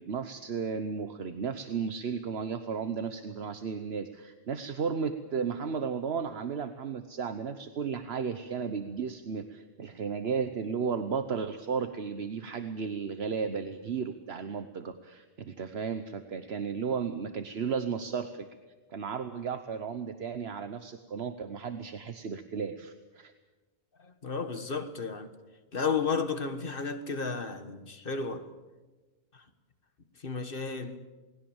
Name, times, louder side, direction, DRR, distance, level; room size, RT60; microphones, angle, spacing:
voice 1, 0.0-18.4 18.9-23.3, right 6 dB, 70° right, 1.3 m, -34 dB
voice 2, 24.0-25.3 25.7-28.5 29.3-29.4 30.2-31.1, left 5 dB, 55° left, 1.7 m, -33 dB
28.0 x 20.0 x 7.2 m
omnidirectional pair, 1.1 m